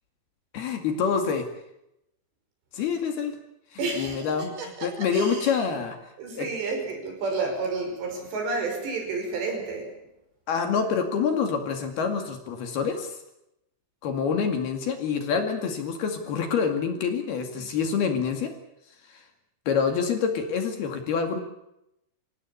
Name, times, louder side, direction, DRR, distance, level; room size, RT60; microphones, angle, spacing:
voice 1, 0.5-1.5 2.7-3.4 3.7-6.0 6.4-6.5 10.5-13.2 14.0-18.5 19.1-19.2 19.7-21.4, left 6 dB, 60° left, 5 dB, 3.8 m, -27 dB
voice 2, 3.8-4.3 4.6-5.6 6.2-10.0, right 3 dB, 65° right, 3 dB, 7.7 m, -31 dB
26.5 x 17.0 x 8.6 m, 0.84 s
omnidirectional pair, 5.5 m